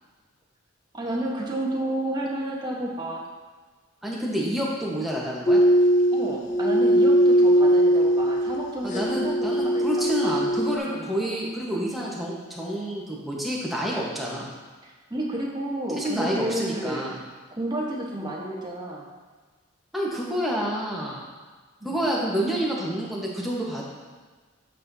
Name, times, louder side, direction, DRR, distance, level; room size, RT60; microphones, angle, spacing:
voice 1, 0.9-3.3 6.1-10.4 10.9-11.1 14.8-17.1 17.6-19.0 21.8-22.0, right 1 dB, 20° right, -3 dB, 1.1 m, -31 dB
voice 2, 4.0-5.6 8.8-14.5 16.0-17.2 19.9-21.2 21.8-23.9, equal, ahead, -5 dB, 1.1 m, -28 dB
sound 1, 5.5-10.8, right 1 dB, 35° left, 0.5 m, -20 dB
8.3 x 6.3 x 2.7 m, 1.4 s
head